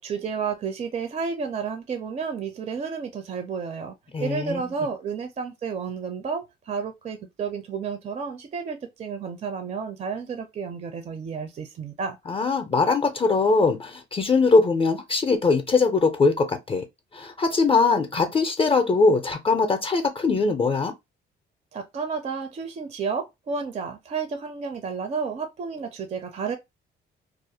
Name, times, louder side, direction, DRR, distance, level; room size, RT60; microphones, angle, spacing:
voice 1, 0.0-3.9 4.2-12.2 21.7-26.6, right 5 dB, 35° right, 0.4 m, -31 dB
voice 2, 4.1-4.7 12.3-16.9 17.1-20.9, left 4 dB, 30° left, 0.4 m, -21 dB
2.4 x 2.1 x 2.6 m
cardioid pair, 90°, 20 cm